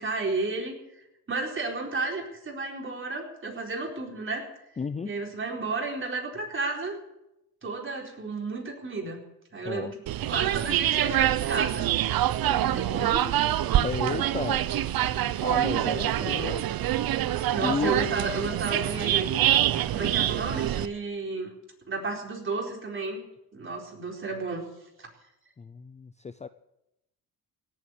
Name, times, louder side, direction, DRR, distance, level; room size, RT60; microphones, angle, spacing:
voice 1, 0.0-4.5 5.0-7.0 7.6-9.2 9.5-10.0 10.2-11.9 12.2-13.3 15.6-16.4 17.5-19.3 19.9-21.5 21.9-23.2 23.5-24.7 25.0-25.1, right 3 dB, 30° right, 1 dB, 4.3 m, -32 dB
voice 2, 4.8-5.1 9.6-9.9 13.8-14.6 15.4-16.6 17.6-17.9 25.6-26.5, left 5 dB, 15° left, 13 dB, 0.5 m, -33 dB
sound 1, 10.1-20.9, right 13 dB, 60° right, 0.8 m, -25 dB
17.5 x 8.0 x 9.7 m, 0.88 s
cardioid pair, 95°, 40 cm